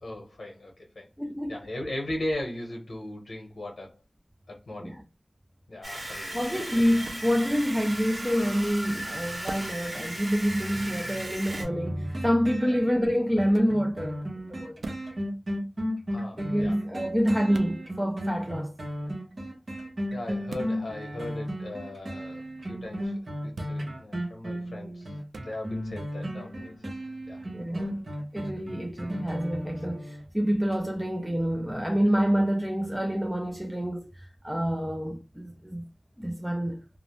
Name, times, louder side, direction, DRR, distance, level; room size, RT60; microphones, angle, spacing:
voice 1, 0.0-1.1 1.5-3.9 4.5-5.0 5.7-6.4 6.7-6.8 12.6-12.8 16.1-16.8 20.1-25.1 25.4-26.7 27.3-27.4, left 1 dB, 75° left, 0.8 m, -38 dB
voice 2, 1.2-1.5 4.8-5.0 6.3-14.8 16.4-18.7 27.5-28.0 28.3-35.9 36.2-36.8, equal, 5° right, 0.4 m, -27 dB
sound 1, 5.8-11.6, right 1 dB, 35° right, 1.3 m, -36 dB
sound 2, 7.0-7.3 9.4-9.8 11.5-11.8 13.5-13.8 14.8-15.1 17.5-17.8 20.5-20.7 23.5-23.8 25.3-25.5, right 3 dB, 90° right, 0.3 m, -40 dB
sound 3, 11.6-30.3 30.7-30.8, equal, 55° right, 0.8 m, -35 dB
2.5 x 2.0 x 3.0 m
wide cardioid pair, 85°, 0 cm